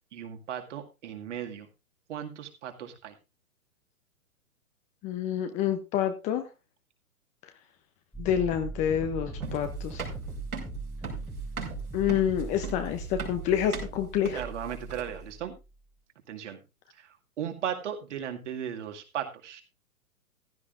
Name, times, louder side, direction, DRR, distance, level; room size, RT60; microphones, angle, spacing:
voice 1, 0.1-1.7 2.1-3.2 14.3-15.5 16.3-16.6 17.0-19.6, right 9 dB, 55° right, 5 dB, 2.2 m, -36 dB
voice 2, 5.0-6.5 8.2-10.0 11.9-14.4, left 9 dB, 15° left, 8 dB, 0.6 m, -28 dB
sound 1, 8.1-15.8, right 3 dB, ahead, 1.2 m, -39 dB
sound 2, 9.4-15.3, right 5 dB, 75° right, 4.5 m, -39 dB
15.0 x 11.5 x 2.5 m, 0.27 s
figure-of-eight pair, 120°, 43 cm